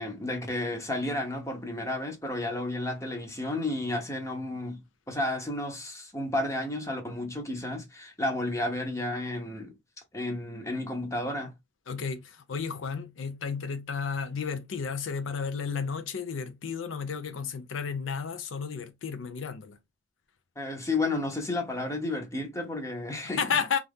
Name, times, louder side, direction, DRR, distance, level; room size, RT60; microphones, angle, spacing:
voice 1, 0.0-9.7 10.1-11.5 20.6-23.4, left 2 dB, 15° left, 0.7 m, -32 dB
voice 2, 11.9-19.8 23.4-23.8, left 6 dB, 90° left, 0.5 m, -32 dB
2.7 x 2.5 x 3.4 m
head